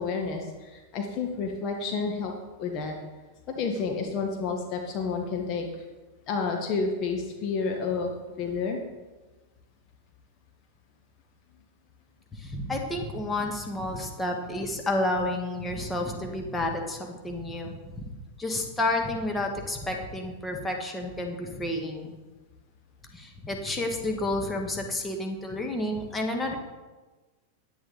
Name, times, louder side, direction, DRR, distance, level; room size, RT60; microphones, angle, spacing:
voice 1, 0.0-2.3 2.6-3.0 3.5-5.8 6.3-8.1 8.4-8.8 26.2-26.3, left 4 dB, 35° left, 1 dB, 1.4 m, -30 dB
voice 2, 12.4-17.9 18.4-22.2 23.1-26.6, left 1 dB, 10° left, 2 dB, 1.7 m, -30 dB
10.0 x 9.5 x 4.0 m, 1.2 s
figure-of-eight pair, 90°, 0 cm